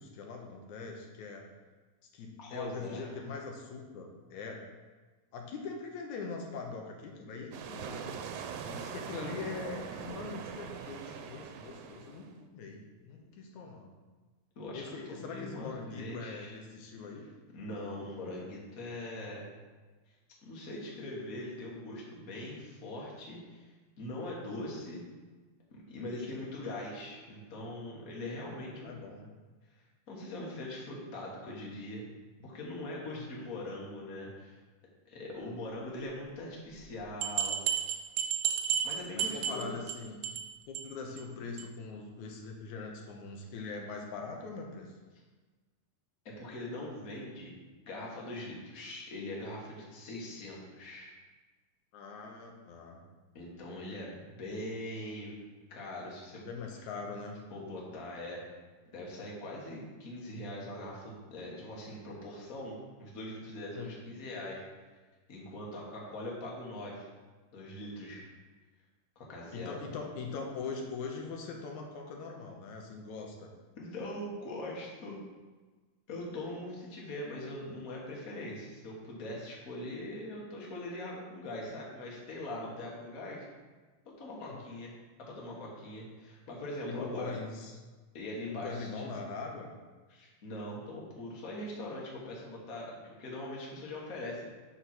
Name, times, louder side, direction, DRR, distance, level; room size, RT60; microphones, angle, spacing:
voice 1, 0.0-1.4 2.1-4.6 5.3-8.2 8.7-13.9 14.7-17.3 28.8-29.3 33.0-33.2 39.1-40.2 40.7-44.9 51.9-53.0 56.5-57.4 63.8-63.9 69.5-73.5 84.4-84.6 86.9-87.7 88.5-89.7, left 4 dB, 85° left, 1 dB, 2.4 m, -42 dB
voice 2, 2.4-3.1 14.5-16.6 17.5-19.5 20.5-25.0 25.9-29.0 30.1-32.0 32.4-34.6 35.0-37.6 38.8-39.8 46.2-47.5 47.8-51.1 53.3-55.4 55.7-56.5 57.5-58.4 58.9-64.6 65.3-67.1 67.5-68.3 69.1-69.8 73.8-75.2 76.1-83.4 84.0-84.9 85.2-87.4 88.1-89.0 90.1-94.5, left 1 dB, 35° left, -3 dB, 1.7 m, -41 dB
sound 1, 7.5-12.4, right 7 dB, 90° right, 2.1 m, -42 dB
sound 2, 36.8-36.9 37.2-39.9 40.2-40.5 40.7-40.8 41.2-41.3 41.6-41.7, right 9 dB, 75° right, 1.7 m, -32 dB
8.0 x 4.2 x 6.0 m, 1.3 s
omnidirectional pair, 3.3 m